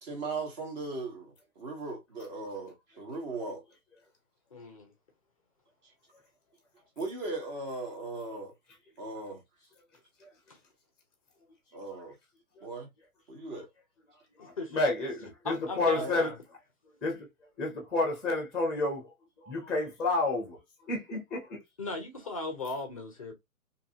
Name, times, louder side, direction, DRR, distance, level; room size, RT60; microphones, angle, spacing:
voice 1, 0.0-3.6 7.0-8.5 9.0-9.4 11.7-12.1 12.6-12.9 13.3-13.7 15.9-16.2, right 3 dB, 30° right, 1.2 m, -38 dB
voice 2, 4.5-4.9 10.5-10.6 14.4-14.8 15.4-16.3 21.8-23.3, left 3 dB, 25° left, 0.4 m, -37 dB
voice 3, 14.4-16.3 17.0-17.3 17.6-19.1 19.4-20.6 20.9-21.6, left 2 dB, ahead, 0.7 m, -30 dB
2.7 x 2.5 x 2.7 m
hypercardioid pair, 145°, 43 cm